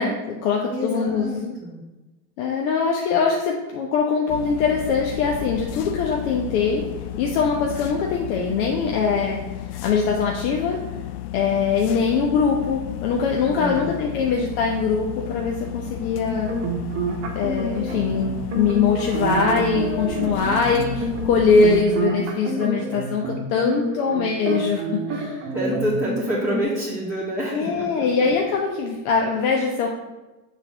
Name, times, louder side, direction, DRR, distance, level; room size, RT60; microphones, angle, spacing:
voice 1, 0.0-1.5 2.4-6.8 7.2-9.4 9.8-10.8 11.3-16.5 17.3-25.4 27.5-29.9, left 5 dB, 70° left, 0 dB, 1.1 m, -22 dB
voice 2, 0.7-1.8 13.5-14.3 25.5-28.0, equal, 5° left, -11 dB, 2.5 m, -27 dB
sound 1, 4.3-21.9, left 13 dB, 90° left, 0.6 m, -33 dB
sound 2, 16.2-26.6, right 2 dB, 35° right, 1.5 m, -28 dB
6.7 x 4.0 x 6.3 m, 1.1 s
supercardioid pair, 140°, 45 cm